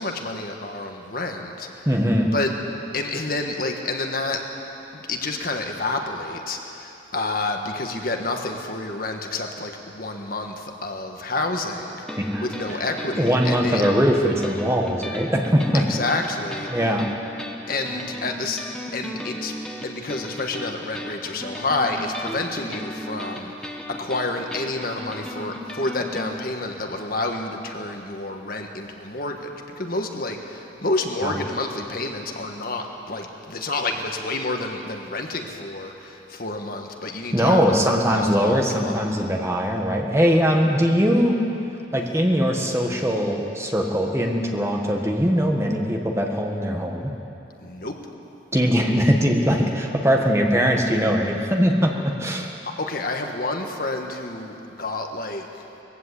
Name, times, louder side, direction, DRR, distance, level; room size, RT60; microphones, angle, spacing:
voice 1, 0.0-1.9 2.2-2.5 2.9-4.4 4.9-12.0 12.4-13.8 15.7-16.7 17.7-18.7 18.9-19.5 19.8-29.5 29.8-39.0 47.6-48.0 52.8-55.6, left 2 dB, 50° left, 3 dB, 1.5 m, -29 dB
voice 2, 1.8-2.3 12.2-12.8 13.2-15.8 16.7-17.1 31.2-31.4 37.3-41.4 41.9-47.1 48.5-52.5, equal, 15° right, 1 dB, 1.5 m, -21 dB
sound 1, 12.1-26.3, left 1 dB, 5° left, 1.1 m, -36 dB
20.5 x 15.5 x 8.3 m, 2.9 s
head